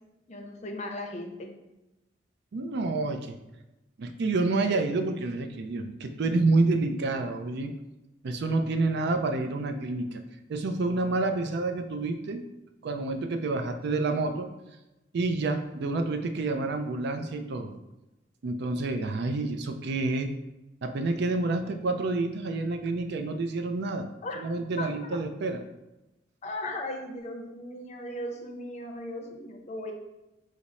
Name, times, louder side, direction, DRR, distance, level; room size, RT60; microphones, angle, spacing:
voice 1, 0.3-1.5 24.2-24.5 24.8-25.2 26.4-29.9, left 1 dB, 35° left, 2 dB, 0.6 m, -37 dB
voice 2, 2.5-3.3 4.0-7.7 8.2-10.2 10.5-12.4 12.8-14.5 15.1-17.8 18.4-20.3 20.8-24.1 24.4-25.6, right 3 dB, 60° right, 6 dB, 0.4 m, -28 dB
4.9 x 2.0 x 4.1 m, 0.97 s
head